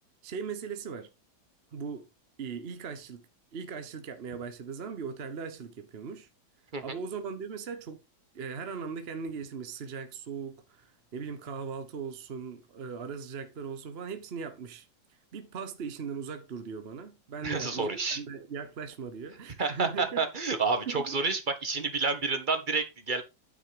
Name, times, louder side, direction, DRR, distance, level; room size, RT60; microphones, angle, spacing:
voice 1, 0.2-1.1 1.7-2.1 2.4-3.3 3.5-6.3 6.8-8.0 8.3-14.9 15.3-20.3 20.5-20.6 20.9-21.2, right 6 dB, 45° right, 0.9 m, -39 dB
voice 2, 17.4-18.2 19.6-23.2, right 4 dB, 25° right, 1.6 m, -29 dB
9.5 x 6.2 x 4.8 m
omnidirectional pair, 2.0 m